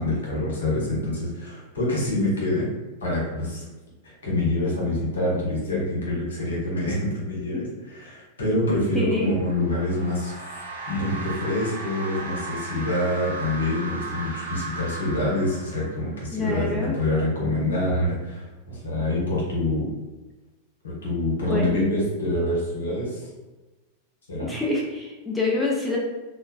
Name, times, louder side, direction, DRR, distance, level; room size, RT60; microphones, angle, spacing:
voice 1, 0.0-2.7 3.0-3.6 4.0-10.3 10.8-19.9 20.8-23.2 24.3-24.5, left 1 dB, 65° left, -4 dB, 0.9 m, -26 dB
voice 2, 8.9-9.3 16.3-17.0 21.5-21.8 24.4-26.0, left 2 dB, 5° left, -4 dB, 0.5 m, -26 dB
sound 1, 9.2-16.2, right 3 dB, 85° right, 0.6 m, -36 dB
3.2 x 2.1 x 2.2 m, 1.2 s
figure-of-eight pair, 90°, 0 cm